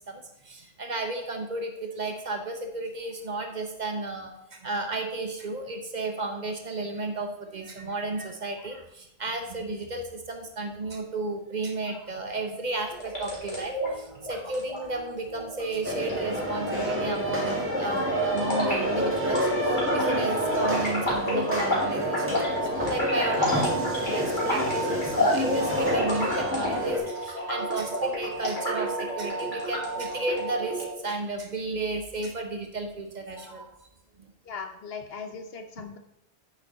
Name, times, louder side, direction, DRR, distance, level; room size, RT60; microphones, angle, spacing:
voice 1, 0.1-33.9 34.2-34.3, right 2 dB, 45° right, 4 dB, 1.1 m, -33 dB
sound 1, 12.9-30.9, equal, 50° left, 3.0 m, -31 dB
sound 2, 15.8-27.0, equal, 10° right, 1.9 m, -28 dB
voice 2, 34.5-36.0, left 5 dB, 70° left, 6 dB, 1.1 m, -38 dB
8.6 x 6.4 x 4.0 m, 0.81 s
omnidirectional pair, 1.1 m